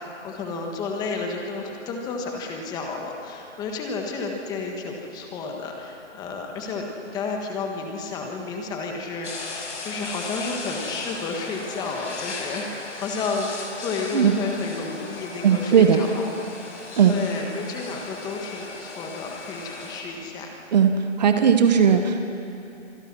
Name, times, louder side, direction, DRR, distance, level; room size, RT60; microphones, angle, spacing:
voice 1, 0.0-16.3 17.0-20.5, left 4 dB, 10° left, 2 dB, 1.5 m, -31 dB
sound 1, 9.2-20.0, left 3 dB, 70° left, 5.2 m, -37 dB
voice 2, 15.4-16.0 17.0-17.2 20.7-22.3, right 7 dB, 35° right, 7 dB, 1.2 m, -18 dB
26.0 x 21.0 x 6.2 m, 2.8 s
hypercardioid pair, 155°, 38 cm